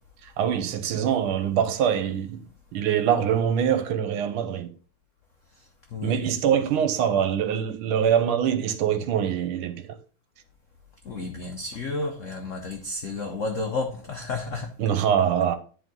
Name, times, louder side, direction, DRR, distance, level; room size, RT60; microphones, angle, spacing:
voice 1, 0.2-2.5 2.7-4.7 6.0-10.0 14.8-15.6, right 8 dB, 80° right, 1.6 m, -24 dB
voice 2, 5.6-6.2 6.8-6.9 11.0-14.7, left 3 dB, 85° left, 0.6 m, -32 dB
10.5 x 3.7 x 3.7 m
omnidirectional pair, 2.4 m